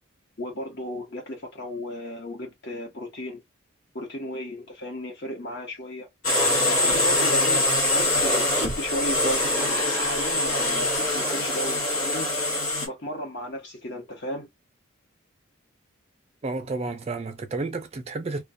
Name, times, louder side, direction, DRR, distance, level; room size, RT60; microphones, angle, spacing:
voice 1, 0.4-3.4 3.9-6.1 6.7-14.5, equal, 55° left, 1.0 m, -35 dB
sound 1, 6.2-12.9, left 1 dB, 80° left, 1.1 m, -23 dB
voice 2, 16.4-18.4, right 3 dB, 30° right, 0.4 m, -31 dB
2.3 x 2.2 x 2.5 m
head